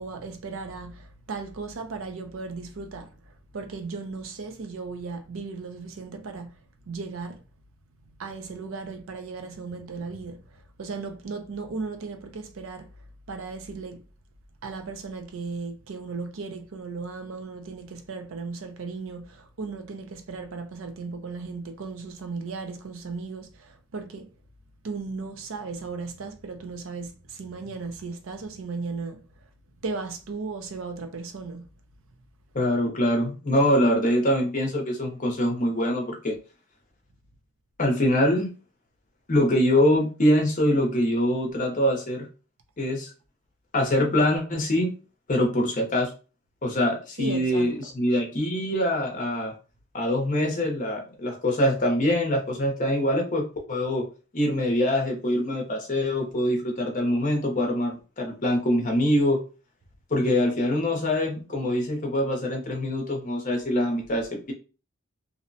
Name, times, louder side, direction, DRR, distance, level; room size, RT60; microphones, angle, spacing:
voice 1, 0.0-6.6 6.8-7.4 8.0-12.9 13.3-14.0 14.6-24.3 24.8-29.2 29.8-31.7 47.2-47.7, right 4 dB, 65° right, 0.5 m, -36 dB
voice 2, 32.5-36.3 37.8-38.5 39.3-42.3 42.8-43.1 43.7-44.9 45.3-46.1 46.6-49.5 49.9-54.0 54.3-59.4 60.1-64.5, left 1 dB, 35° left, 0.7 m, -24 dB
2.7 x 2.1 x 2.6 m
head